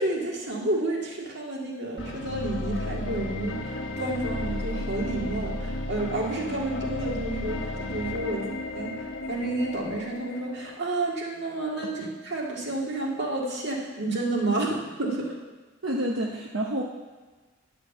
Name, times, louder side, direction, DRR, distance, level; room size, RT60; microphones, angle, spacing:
voice 1, 0.0-3.6 4.0-9.0 9.3-15.4, right 2 dB, 60° right, -2 dB, 1.9 m, -30 dB
sound 1, 2.0-11.0, left 1 dB, 75° left, 1.0 m, -34 dB
voice 2, 15.8-16.8, right 1 dB, 80° right, -1 dB, 0.9 m, -28 dB
10.5 x 5.0 x 7.1 m, 1.3 s
head